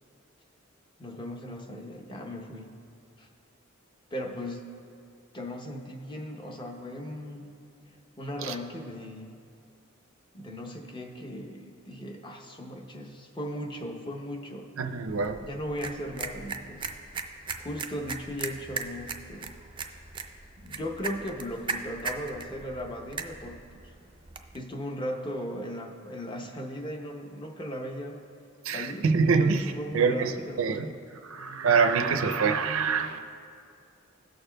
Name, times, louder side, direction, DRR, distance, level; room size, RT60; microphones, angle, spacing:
voice 1, 1.0-2.7 3.2-3.3 4.1-4.7 5.3-7.5 8.2-9.4 10.3-14.7 15.4-16.9 17.6-19.5 20.6-23.8 24.5-28.2 28.7-29.1 29.4-31.0, equal, 25° left, 2 dB, 0.7 m, -37 dB
voice 2, 14.8-15.4 28.6-30.9 31.2-33.2, right 5 dB, 75° right, 7 dB, 0.5 m, -25 dB
sound 1, 15.1-24.6, right 4 dB, 25° right, 0.4 m, -39 dB
17.0 x 6.6 x 2.2 m, 2.5 s
head